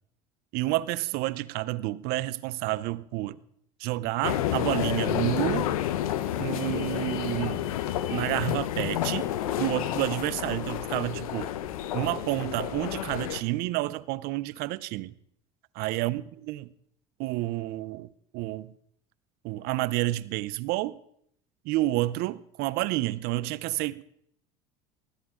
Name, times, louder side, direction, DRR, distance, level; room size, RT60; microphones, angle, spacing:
voice 1, 0.5-3.4 3.8-5.7 6.4-7.7 8.1-11.5 11.9-15.1 15.7-16.7 17.2-18.1 18.3-18.7 19.4-21.0 21.6-24.0, right 18 dB, 65° right, 0.7 m, -30 dB
sound 1, 4.2-13.4, left 12 dB, 85° left, 0.9 m, -30 dB
19.5 x 13.5 x 3.8 m
hypercardioid pair, 90°, 18 cm